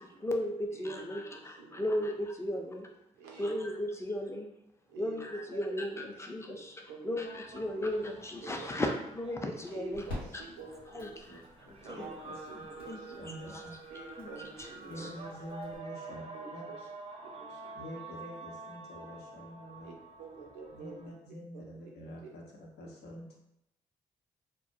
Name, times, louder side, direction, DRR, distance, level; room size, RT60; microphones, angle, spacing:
voice 1, 0.0-2.9 3.4-4.5 5.0-6.6 7.0-10.0 10.9-11.1 11.9-12.0 12.9-13.0 14.2-14.3, left 1 dB, 15° left, 2 dB, 0.5 m, -35 dB
voice 2, 0.7-2.0 3.1-3.5 4.0-4.1 4.9-7.8 8.4-8.7 9.7-11.4 11.8-13.4 13.9-15.1 16.3-16.9 17.2-18.0 19.8-21.1 21.5-21.6, right 4 dB, 90° right, -1 dB, 0.4 m, -50 dB
sound 1, 7.2-21.1, right 3 dB, 35° right, 0.5 m, -48 dB
sound 2, 7.8-15.8, left 1 dB, 90° left, 1.2 m, -49 dB
voice 3, 11.6-12.3 13.2-13.7 14.8-16.6 17.7-19.9 20.7-23.4, equal, 65° left, -1 dB, 0.7 m, -47 dB
2.2 x 2.1 x 2.6 m, 0.80 s
hypercardioid pair, 40°, 18 cm